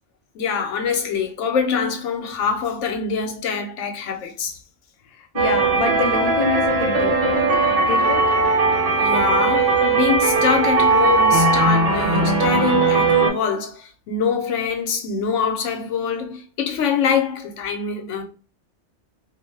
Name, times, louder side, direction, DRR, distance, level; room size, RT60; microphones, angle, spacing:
voice 1, 0.3-4.6 9.0-18.2, left 6 dB, 85° left, 0.9 m, -24 dB
voice 2, 5.0-8.4, left 5 dB, 55° left, 0.4 m, -28 dB
sound 1, 5.4-13.3, right 3 dB, 75° right, 1.0 m, -18 dB
2.5 x 2.1 x 3.2 m
omnidirectional pair, 1.2 m